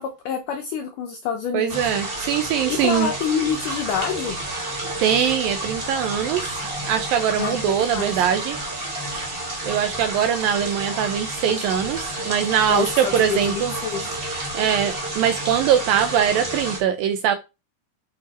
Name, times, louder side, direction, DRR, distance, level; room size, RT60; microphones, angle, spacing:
voice 1, 0.0-1.9 2.7-4.4 7.4-7.6 7.9-8.2 12.7-14.1, left 7 dB, 75° left, 5 dB, 1.9 m, -27 dB
voice 2, 1.5-3.1 5.0-6.5 6.8-8.6 9.6-13.7 14.5-17.4, right 9 dB, 75° right, 8 dB, 2.1 m, -22 dB
sound 1, 1.7-16.8, right 1 dB, 25° right, 1.1 m, -30 dB
8.4 x 4.9 x 4.2 m, 0.26 s
omnidirectional pair, 4.7 m